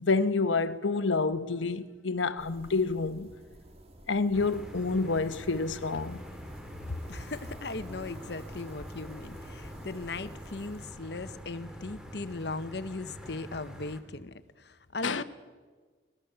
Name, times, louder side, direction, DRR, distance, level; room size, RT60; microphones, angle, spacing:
voice 1, 0.0-3.3 4.1-6.2 15.0-15.2, left 3 dB, 90° left, 1.1 m, -28 dB
sound 1, 2.4-10.9, right 1 dB, 30° right, 2.0 m, -52 dB
sound 2, 4.3-14.0, equal, 5° right, 2.4 m, -45 dB
voice 2, 6.9-15.2, left 3 dB, 60° left, 1.0 m, -38 dB
24.0 x 19.5 x 6.8 m
head